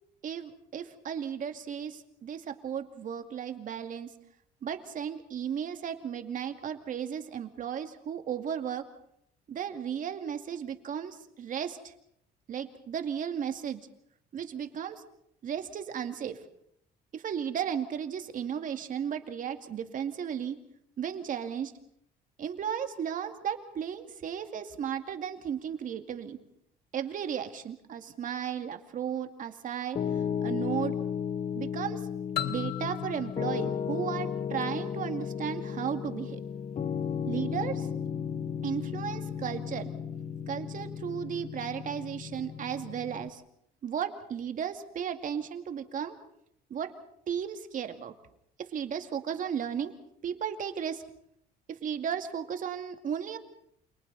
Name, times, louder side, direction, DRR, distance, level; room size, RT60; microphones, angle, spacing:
voice 1, 0.2-4.1 4.6-8.9 9.5-11.9 12.5-13.8 14.3-15.0 15.4-16.4 17.1-20.6 21.0-21.7 22.4-26.4 26.9-30.0 30.4-31.0 31.5-32.0 32.4-36.4 37.3-37.9 38.6-39.9 40.5-43.4 43.8-46.2 46.7-46.9 47.3-48.1 48.6-49.9 50.2-51.0 51.7-53.4, right 8 dB, 50° right, 7 dB, 2.3 m, -35 dB
Piano, 29.9-43.3, left 7 dB, 40° left, 1.1 m, -34 dB
sound 1, 32.4-35.1, left 13 dB, 70° left, 1.4 m, -37 dB
29.5 x 28.0 x 4.2 m, 0.69 s
cardioid pair, 110°, 17 cm